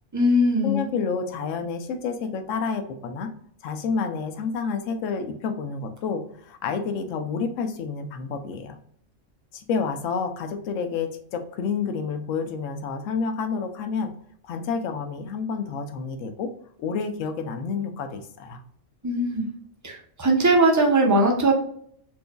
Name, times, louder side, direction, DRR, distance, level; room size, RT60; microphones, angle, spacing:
voice 1, 0.1-0.9 19.0-19.5 19.8-21.5, right 1 dB, 20° right, 0 dB, 0.6 m, -20 dB
voice 2, 0.6-3.3 3.6-8.8 9.5-14.1 14.4-16.5 16.8-18.6, left 5 dB, 90° left, 7 dB, 0.9 m, -29 dB
4.5 x 2.6 x 2.2 m, 0.65 s
omnidirectional pair, 1.3 m